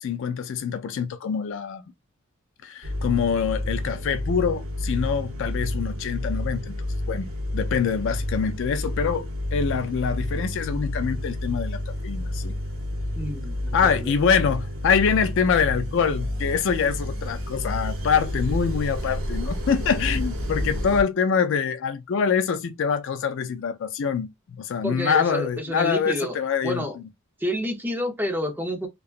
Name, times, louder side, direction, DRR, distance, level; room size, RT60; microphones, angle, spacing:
voice 1, 0.0-1.8 2.6-6.8 7.1-7.3 7.5-12.5 13.7-26.8, left 6 dB, 65° left, 0.3 m, -25 dB
sound 1, 2.8-21.0, left 1 dB, 75° right, 0.8 m, -30 dB
voice 2, 13.2-14.1 24.8-26.4 26.6-27.0 27.4-28.9, equal, 10° right, 0.7 m, -29 dB
2.7 x 2.3 x 2.4 m
head